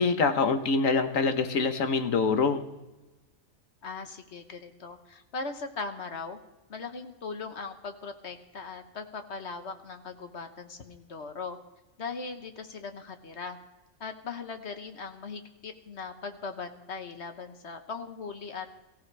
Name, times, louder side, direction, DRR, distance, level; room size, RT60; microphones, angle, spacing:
voice 1, 0.0-2.6, left 4 dB, 70° left, 8 dB, 1.5 m, -25 dB
voice 2, 3.8-6.4 6.7-11.6 12.0-13.6 14.0-18.7, left 4 dB, 55° left, 7 dB, 1.4 m, -39 dB
22.5 x 15.0 x 3.4 m, 1.1 s
omnidirectional pair, 1.4 m